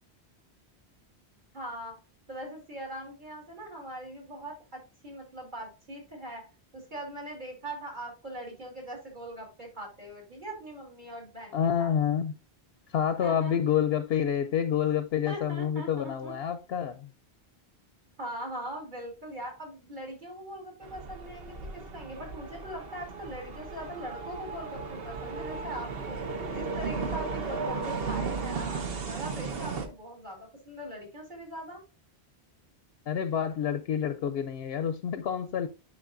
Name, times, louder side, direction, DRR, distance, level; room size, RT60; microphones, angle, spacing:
voice 1, 1.5-2.0 2.3-6.5 6.7-11.9 13.2-13.6 15.2-16.3 18.2-26.2 26.5-31.8, right 1 dB, 45° right, 3.2 m, -41 dB
voice 2, 11.5-12.3 12.9-17.1 33.1-35.7, left 8 dB, 75° left, 0.8 m, -28 dB
sound 1, 20.8-29.9, right 4 dB, 65° right, 1.2 m, -35 dB
9.5 x 5.6 x 2.5 m
omnidirectional pair, 1.1 m